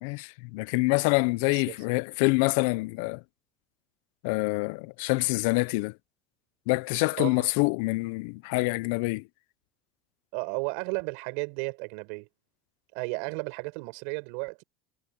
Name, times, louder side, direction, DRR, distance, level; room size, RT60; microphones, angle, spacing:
voice 1, 0.0-3.2 4.2-5.9 6.7-9.2, left 27 dB, 80° left, 0.5 m, -26 dB
voice 2, 1.4-1.7 7.2-7.5 8.5-8.7 10.3-12.3 12.9-14.6, right 33 dB, 75° right, 6.3 m, -34 dB
cardioid pair, 145°, 0 cm